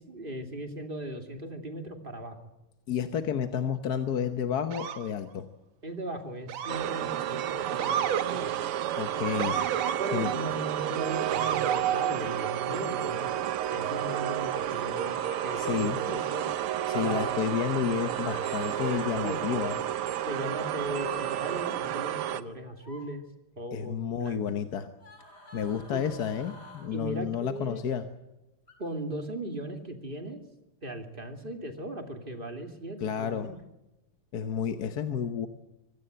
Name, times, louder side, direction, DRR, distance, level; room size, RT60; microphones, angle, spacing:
voice 1, 0.0-2.4 5.8-8.0 8.3-8.8 10.0-15.2 15.4-16.5 16.9-17.4 18.7-19.6 20.3-23.2 23.6-24.4 25.9-26.0 26.9-27.8 28.8-30.4 30.8-33.6, right 1 dB, 25° right, 5 dB, 2.6 m, -38 dB
voice 2, 2.9-5.5 9.0-9.7 10.1-10.3 15.6-16.0 16.9-19.8 23.7-24.9 25.5-28.1 33.0-33.5 34.3-35.5, left 8 dB, 55° left, 8 dB, 1.4 m, -31 dB
Motor vehicle (road) / Siren, 4.7-5.1 6.5-7.0 7.8-8.3 9.4-10.0 11.3-11.8, right 8 dB, 70° right, 1.8 m, -31 dB
sound 1, 6.7-22.4, right 11 dB, 85° right, 1.9 m, -31 dB
sound 2, 14.4-15.9 18.1-19.2 20.9-21.1 22.7-23.1 25.0-26.9 28.7-28.8, right 1 dB, 40° left, 5.5 m, -48 dB
25.5 x 17.0 x 7.9 m, 0.97 s
omnidirectional pair, 2.4 m